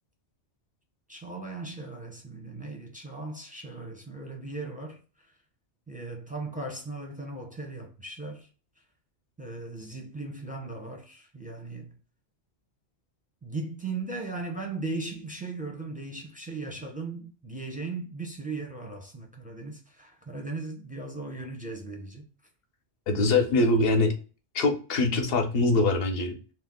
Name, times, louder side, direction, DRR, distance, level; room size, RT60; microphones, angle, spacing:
voice 1, 1.1-5.3 5.9-8.5 9.4-12.0 13.4-22.2, right 3 dB, 10° right, 0.5 m, -37 dB
voice 2, 23.1-24.1 24.5-26.5, left 2 dB, 60° left, 0.8 m, -23 dB
2.8 x 2.1 x 3.5 m
omnidirectional pair, 1.2 m